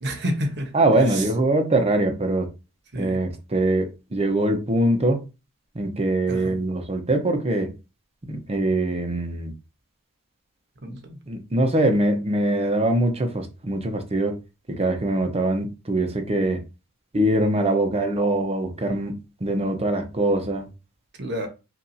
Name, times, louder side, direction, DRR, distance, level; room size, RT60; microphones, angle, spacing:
voice 1, 0.0-0.7 1.1-1.2 2.9-3.2 6.3-6.5 10.8-11.2 21.2-21.5, equal, 50° right, 1.1 m, -29 dB
voice 2, 0.7-2.5 3.0-5.2 5.7-7.7 8.3-9.5 11.3-14.4 14.8-16.6 17.1-20.7, right 1 dB, 30° right, 0.8 m, -23 dB
5.6 x 2.6 x 2.7 m
head